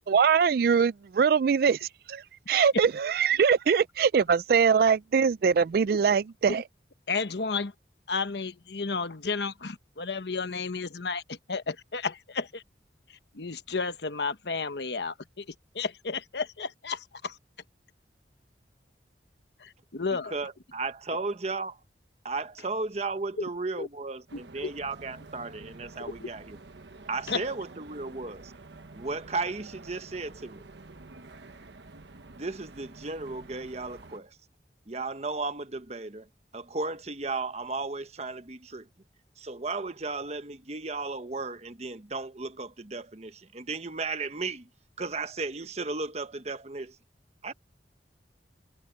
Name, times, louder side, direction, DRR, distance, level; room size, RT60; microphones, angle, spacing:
voice 1, 0.0-2.2 2.5-6.6, right 6 dB, 55° right, 0.3 m, -23 dB
voice 2, 7.1-7.7 8.1-12.6 13.1-17.4 19.6-20.3 23.8-23.9 24.3-24.7 26.0-26.3 27.3-27.5, left 4 dB, 75° left, 1.1 m, -33 dB
voice 3, 20.3-21.8 22.2-26.6 27.1-28.5 28.9-30.7 32.3-34.4 34.9-36.3 36.5-38.9 39.4-44.7 45.0-47.0 47.4-47.5, right 3 dB, 40° right, 1.1 m, -35 dB
sound 1, 24.3-34.2, right 3 dB, 85° right, 1.1 m, -49 dB
head